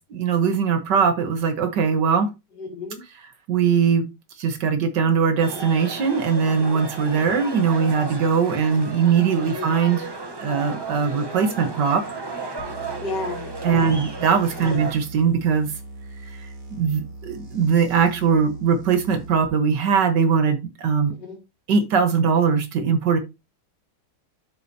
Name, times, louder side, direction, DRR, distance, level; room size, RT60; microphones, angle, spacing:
voice 1, 0.1-2.3 3.5-4.1 4.4-10.1 10.4-12.0 13.6-15.7 16.7-21.1 21.7-23.2, right 6 dB, 85° right, 8 dB, 1.9 m, -21 dB
voice 2, 2.6-3.0 7.3-7.4 9.6-9.7 13.0-14.0 14.6-14.8 21.1-21.4, left 3 dB, 85° left, 1 dB, 2.9 m, -33 dB
sound 1, 5.4-14.9, right 3 dB, 25° right, 0.5 m, -34 dB
sound 2, 12.6-19.5, right 2 dB, 50° right, 1.8 m, -40 dB
12.5 x 4.3 x 2.7 m, 0.25 s
omnidirectional pair, 1.8 m